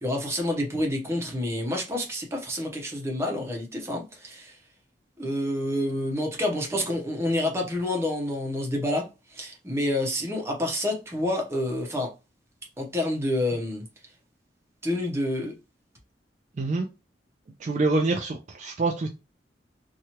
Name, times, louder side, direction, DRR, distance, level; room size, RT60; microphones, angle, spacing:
voice 1, 0.0-4.6 5.2-12.1 12.8-13.8 14.8-15.5, left 1 dB, 15° right, 0.7 m, -28 dB
voice 2, 17.6-19.1, right 3 dB, 40° right, 0.4 m, -26 dB
2.8 x 2.3 x 2.8 m
head